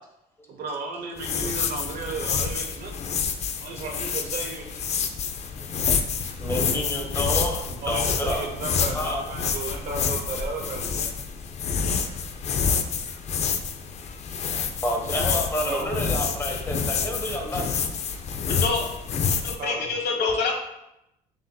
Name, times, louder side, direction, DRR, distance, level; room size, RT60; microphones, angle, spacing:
voice 1, 0.5-2.9 3.6-4.7 7.8-11.1 15.7-16.0 19.6-19.9, right 3 dB, 60° right, 0 dB, 0.6 m, -34 dB
sound 1, 1.2-19.6, left 6 dB, 40° left, 0.4 m, -28 dB
voice 2, 6.4-8.4 8.9-9.2 14.8-17.7, left 1 dB, 15° left, 0 dB, 1.0 m, -29 dB
voice 3, 18.5-18.8 19.4-20.5, left 4 dB, 70° left, 2 dB, 1.0 m, -26 dB
7.3 x 2.5 x 2.2 m, 0.85 s
cardioid pair, 110°, 17 cm